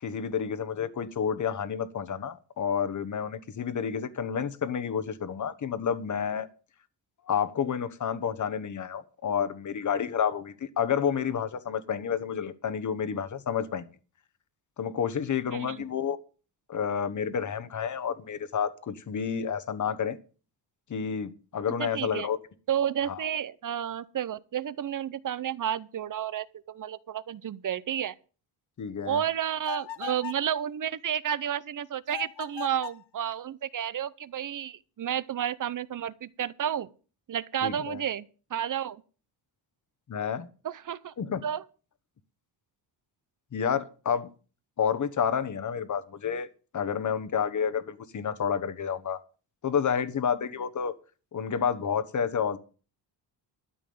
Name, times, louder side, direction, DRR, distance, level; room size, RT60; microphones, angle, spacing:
voice 1, 0.0-6.5 7.3-13.9 14.8-16.2 16.7-20.2 20.9-22.4 23.1-23.2 28.8-29.2 37.6-38.0 40.1-40.5 41.2-41.4 43.5-44.3 44.8-46.5 46.7-49.2 49.6-50.9 51.3-52.6, left 7 dB, 40° left, 1.2 m, -30 dB
voice 2, 15.5-15.8 21.8-22.3 22.7-28.1 29.0-36.9 37.3-38.3 38.5-39.0 40.6-41.1 41.4-41.6, right 9 dB, 45° right, 0.7 m, -31 dB
sound 1, 29.6-30.5 32.1-33.1, left 11 dB, 70° left, 0.9 m, -39 dB
13.0 x 6.0 x 8.7 m
cardioid pair, 110°, 44 cm